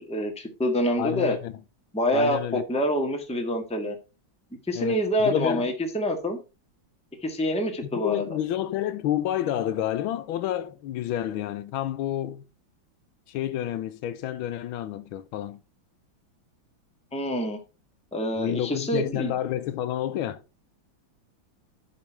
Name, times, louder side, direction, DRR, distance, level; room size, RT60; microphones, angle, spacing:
voice 1, 0.0-1.4 1.9-4.0 4.7-6.4 7.2-8.2 17.1-17.6 18.1-19.3, equal, 5° left, 1.4 m, -26 dB
voice 2, 1.0-1.6 2.1-2.6 4.7-5.7 7.9-12.4 13.3-15.6 18.4-20.4, left 12 dB, 85° left, 1.5 m, -29 dB
11.5 x 4.3 x 4.4 m
omnidirectional pair, 2.2 m